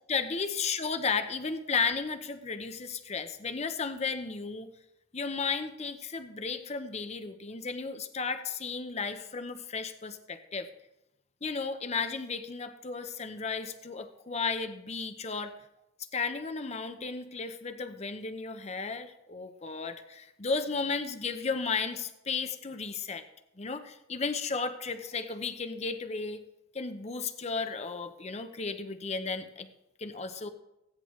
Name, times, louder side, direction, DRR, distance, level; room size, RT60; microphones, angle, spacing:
voice 1, 0.1-4.7 5.1-10.7 11.4-15.5 16.1-23.2 23.6-26.4 26.7-29.7 30.0-30.5, left 4 dB, 35° left, 8 dB, 0.8 m, -34 dB
15.5 x 9.7 x 3.2 m, 0.88 s
head